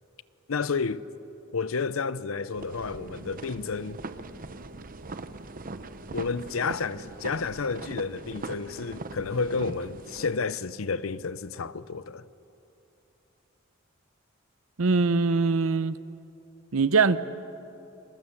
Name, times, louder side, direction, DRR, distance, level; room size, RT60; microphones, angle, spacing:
voice 1, 0.5-1.1 1.5-4.0 6.1-12.2, left 4 dB, 80° left, 0.7 m, -31 dB
sound 1, 2.5-10.4, right 2 dB, 40° right, 0.9 m, -41 dB
voice 2, 14.8-16.0 16.7-17.2, right 4 dB, 80° right, 0.8 m, -22 dB
27.0 x 22.0 x 7.2 m
head